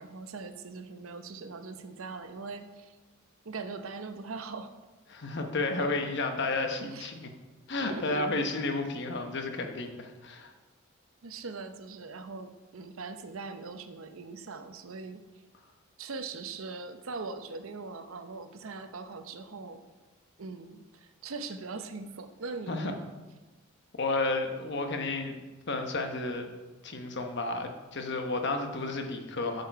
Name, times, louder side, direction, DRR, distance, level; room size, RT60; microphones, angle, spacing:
voice 1, 0.0-2.9 3.4-4.7 6.8-7.1 7.9-8.2 11.2-15.2 16.0-19.8 20.4-23.1, right 4 dB, 85° right, 8 dB, 0.7 m, -41 dB
voice 2, 5.1-7.3 7.7-10.5 22.7-22.9 23.9-25.3 25.7-26.5 26.8-29.6, left 2 dB, 60° left, 5 dB, 1.0 m, -32 dB
8.2 x 6.7 x 4.6 m, 1.2 s
head